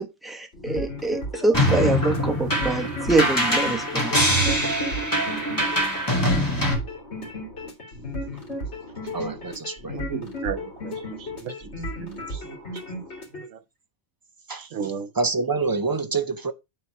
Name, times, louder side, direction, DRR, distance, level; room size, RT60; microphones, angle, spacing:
voice 1, 0.0-4.3, right 2 dB, ahead, 1.0 m, -25 dB
sound 1, 0.5-13.4, left 1 dB, 60° left, 2.7 m, -35 dB
sound 2, 1.5-6.7, equal, 15° left, 2.2 m, -23 dB
voice 2, 9.1-10.0 14.5-14.6 15.2-16.5, right 4 dB, 35° right, 0.3 m, -26 dB
voice 3, 9.9-10.9 11.4-11.5 12.0-12.6 13.4-13.5 14.6-15.1, right 6 dB, 75° right, 1.2 m, -33 dB
8.8 x 4.1 x 4.6 m
omnidirectional pair, 1.3 m